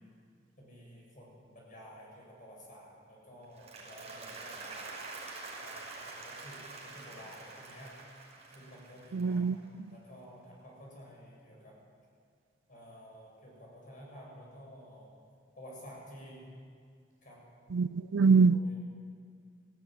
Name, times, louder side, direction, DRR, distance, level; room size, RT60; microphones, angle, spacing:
voice 1, 0.6-4.7 5.6-5.8 6.0-7.9 8.6-9.5 9.9-11.8 12.7-15.1 15.6-16.4 17.2-17.4 18.2-18.8, equal, 45° left, -2 dB, 7.4 m, -52 dB
Applause, 3.4-9.7, right 3 dB, 35° right, 5.9 m, -46 dB
voice 2, 9.1-9.9 17.7-18.6, right 4 dB, 85° right, 19 dB, 0.4 m, -25 dB
19.0 x 15.5 x 9.4 m, 2.1 s
head